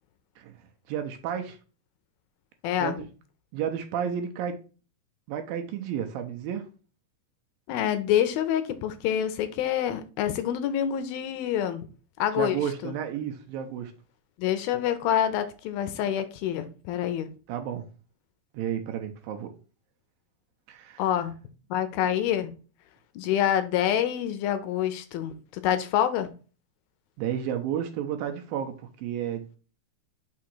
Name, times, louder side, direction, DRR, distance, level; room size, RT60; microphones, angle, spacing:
voice 1, 0.9-1.6 2.8-3.0 3.5-4.6 5.3-6.7 12.4-13.9 17.5-17.9 18.5-19.5 20.7-21.0 27.2-29.6, right 9 dB, 80° right, 2.3 m, -32 dB
voice 2, 2.6-3.0 7.7-11.9 12.2-12.6 12.8-12.9 14.4-17.3 21.0-21.3 21.7-22.5 23.2-26.3, left 10 dB, 80° left, 2.4 m, -27 dB
6.1 x 3.7 x 4.4 m
omnidirectional pair, 4.5 m